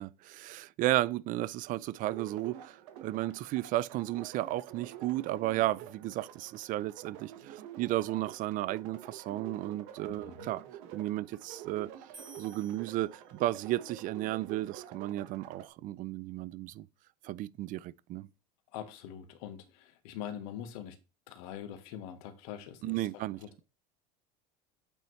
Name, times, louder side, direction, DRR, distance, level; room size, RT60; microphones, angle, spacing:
voice 1, 0.0-10.6 10.9-11.9 12.4-16.9 17.2-18.3 22.8-23.4, right 15 dB, 45° right, 0.4 m, -34 dB
sound 1, 2.0-15.7, right 10 dB, 70° right, 1.3 m, -48 dB
voice 2, 10.1-10.5 18.7-21.0 21.3-23.1 23.4-23.5, left 9 dB, 75° left, 1.3 m, -43 dB
sound 2, 12.1-13.8, right 3 dB, 25° right, 1.1 m, -55 dB
8.5 x 4.4 x 3.1 m
supercardioid pair, 115°, 19 cm